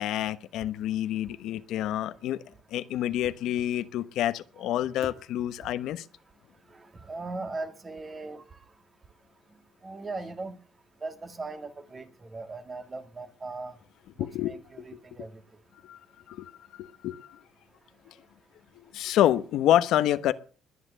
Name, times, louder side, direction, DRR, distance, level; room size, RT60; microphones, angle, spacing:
voice 1, 0.0-2.4 2.7-6.0 14.2-15.0 15.8-16.0 16.3-16.5 16.8-17.4 18.1-18.2 18.7-20.3, left 12 dB, 75° left, 1.1 m, -28 dB
voice 2, 7.0-8.4 9.8-10.5 11.0-13.7 14.2-15.3, right 3 dB, 25° right, 2.0 m, -38 dB
21.0 x 9.8 x 6.9 m
cardioid pair, 110°, 0 cm